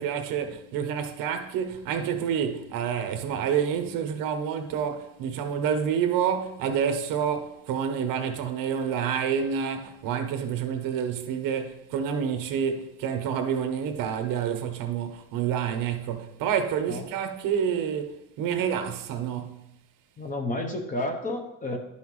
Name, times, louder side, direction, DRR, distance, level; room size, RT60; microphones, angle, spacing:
voice 1, 0.0-19.6, right 8 dB, 65° right, 0.9 m, -28 dB
voice 2, 20.2-21.8, left 1 dB, 20° left, 0.8 m, -31 dB
11.0 x 5.7 x 3.1 m
cardioid pair, 160°, 36 cm